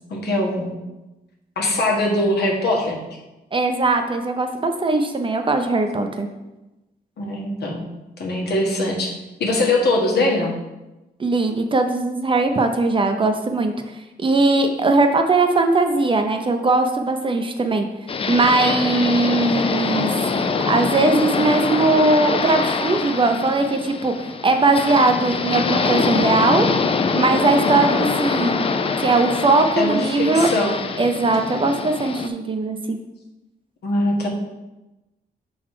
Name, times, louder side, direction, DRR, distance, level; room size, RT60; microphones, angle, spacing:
voice 1, 0.1-0.8 1.6-3.0 7.2-7.9 8.2-9.1 9.4-10.6 28.4-28.6 29.8-30.8 33.8-34.3, left 2 dB, 80° left, -1 dB, 1.4 m, -21 dB
voice 2, 3.5-6.3 11.2-13.7 14.2-17.9 18.3-20.1 20.7-24.1 24.4-26.7 27.1-28.6 29.0-30.5 31.0-33.0, right 3 dB, 30° right, 5 dB, 0.6 m, -19 dB
sound 1, 18.1-32.3, left 4 dB, 35° left, 0.4 m, -24 dB
6.0 x 4.0 x 4.8 m, 1.0 s
wide cardioid pair, 135°, 17 cm